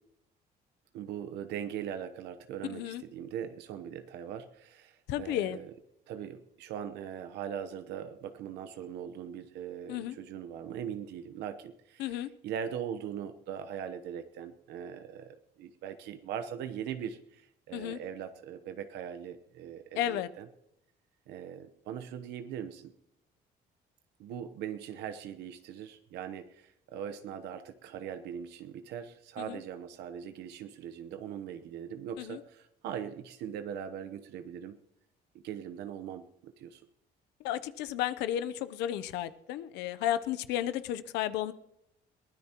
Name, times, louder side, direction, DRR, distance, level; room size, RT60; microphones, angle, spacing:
voice 1, 0.9-5.7 6.1-20.5 21.3-22.9 24.2-34.8 35.4-36.8, right 9 dB, 80° right, 9 dB, 1.0 m, -40 dB
voice 2, 2.7-3.0 5.1-5.6 9.9-10.1 12.0-12.3 17.7-18.0 20.0-20.3 29.4-29.6 32.2-32.4 37.4-41.5, left 12 dB, 90° left, 13 dB, 0.7 m, -33 dB
22.5 x 16.0 x 3.0 m, 0.82 s
cardioid pair, 110°, 17 cm